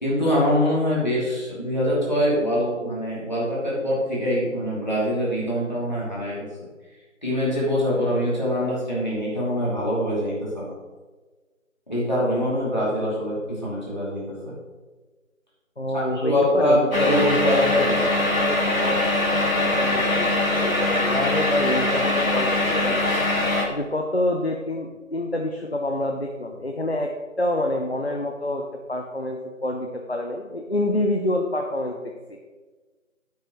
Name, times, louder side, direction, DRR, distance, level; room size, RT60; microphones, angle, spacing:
voice 1, 0.0-6.5 7.2-10.7 11.9-14.5 15.9-18.0, equal, 35° left, -7 dB, 2.7 m, -24 dB
voice 2, 15.8-23.0 23.7-27.1 27.4-32.0 32.3-32.4, left 1 dB, 50° left, 2 dB, 0.8 m, -27 dB
sound 1, 16.9-23.7, left 2 dB, 80° left, 2.0 m, -22 dB
10.0 x 8.2 x 3.1 m, 1.3 s
figure-of-eight pair, 180°, 40 cm